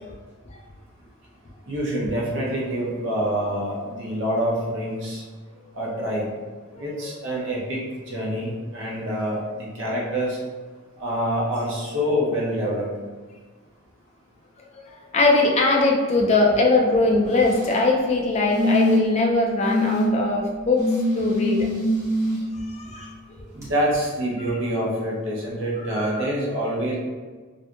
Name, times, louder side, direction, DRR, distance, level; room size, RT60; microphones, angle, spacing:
voice 1, 1.7-5.2 5.7-6.3 6.7-10.4 11.0-12.9 23.5-27.0, equal, 60° right, -4 dB, 0.7 m, -26 dB
voice 2, 14.8-21.7 22.7-23.4 25.9-26.0, left 2 dB, 30° left, 0 dB, 0.3 m, -21 dB
sound 1, 17.2-17.8 18.5-19.2 19.6-20.1 20.8-22.4 23.6-23.7, left 1 dB, 15° right, 0.6 m, -23 dB
2.6 x 2.5 x 2.3 m, 1.4 s
head